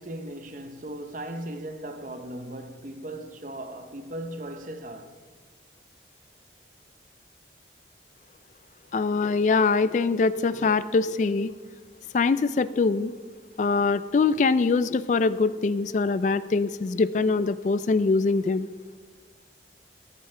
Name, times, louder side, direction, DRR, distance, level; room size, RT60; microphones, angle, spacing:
voice 1, 0.0-5.1, right 1 dB, 45° right, 0.8 m, -37 dB
voice 2, 8.9-11.5 12.1-13.1 13.6-18.7, left 4 dB, 40° left, 0.3 m, -23 dB
13.5 x 13.5 x 3.3 m
head